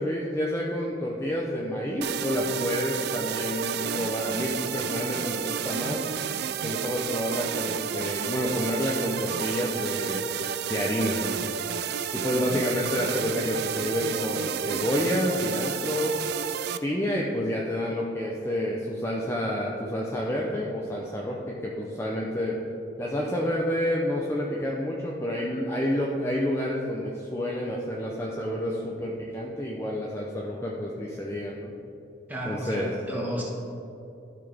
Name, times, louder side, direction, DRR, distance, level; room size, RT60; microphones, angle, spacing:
voice 1, 0.0-6.0 6.6-11.5 12.1-16.2 16.8-22.6 23.0-31.7 32.5-32.9, equal, 15° left, -3 dB, 0.6 m, -29 dB
sound 1, 2.0-16.8, right 8 dB, 55° right, 0.3 m, -31 dB
voice 2, 32.3-33.4, right 1 dB, 10° right, -3 dB, 1.4 m, -32 dB
12.5 x 5.9 x 3.5 m, 2.9 s
head